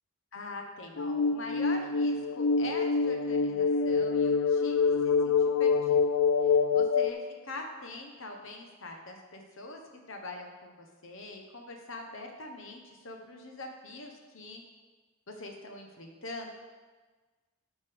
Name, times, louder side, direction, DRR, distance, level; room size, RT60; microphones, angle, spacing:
voice 1, 0.3-6.0 6.4-14.6 15.3-16.5, left 2 dB, 60° left, 2 dB, 1.1 m, -43 dB
sound 1, 1.0-7.1, left 5 dB, 75° left, 0.4 m, -26 dB
11.5 x 5.2 x 3.6 m, 1.3 s
head